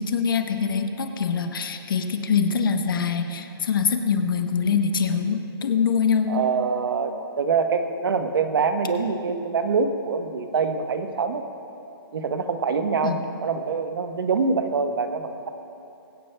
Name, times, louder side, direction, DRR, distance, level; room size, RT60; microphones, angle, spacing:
voice 1, 0.0-6.4 13.0-13.2, left 6 dB, 60° left, 5 dB, 1.0 m, -24 dB
voice 2, 6.3-11.4 12.1-15.5, right 5 dB, 65° right, 7 dB, 1.0 m, -25 dB
23.0 x 8.5 x 2.2 m, 2.9 s
hypercardioid pair, 160°, 13 cm